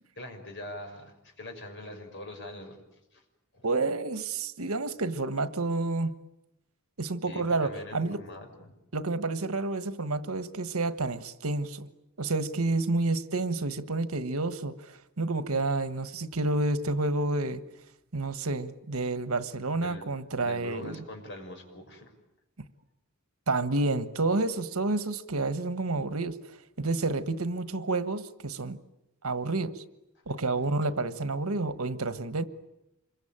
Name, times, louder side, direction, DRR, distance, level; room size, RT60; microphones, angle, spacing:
voice 1, 0.2-2.8 3.1-3.2 3.5-3.7 7.2-8.7 19.7-20.1 20.4-22.1 30.6-30.7, left 1 dB, 60° left, 4 dB, 6.1 m, -43 dB
voice 2, 3.6-6.1 7.0-8.2 8.9-11.9 12.2-17.6 18.1-21.0 23.5-26.4 26.8-28.8 29.2-29.8 30.3-32.4, right 2 dB, 85° right, 12 dB, 1.5 m, -29 dB
27.0 x 23.0 x 9.0 m, 0.86 s
head